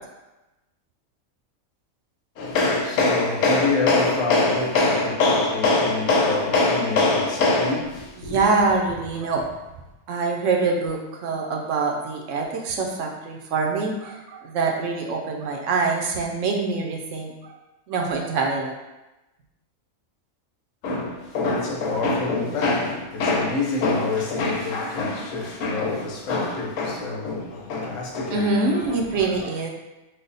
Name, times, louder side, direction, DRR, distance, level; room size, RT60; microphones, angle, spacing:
voice 1, 2.4-8.4 20.8-29.1, left 3 dB, 80° left, 1.1 m, -23 dB
voice 2, 8.2-9.5 10.1-17.5 17.9-18.7 28.3-29.7, right 4 dB, 75° right, 0.9 m, -24 dB
3.4 x 2.1 x 3.9 m
omnidirectional pair, 1.4 m